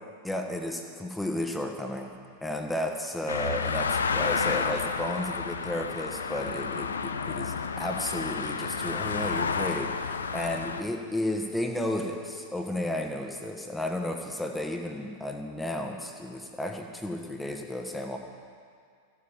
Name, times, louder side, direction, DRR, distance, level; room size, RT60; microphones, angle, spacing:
voice 1, 0.2-2.1 2.4-18.2, left 1 dB, 5° left, 3 dB, 1.4 m, -33 dB
sound 1, 3.3-10.8, left 5 dB, 70° left, 0.7 m, -31 dB
14.0 x 10.0 x 7.3 m, 2.2 s
figure-of-eight pair, 90°, 0 cm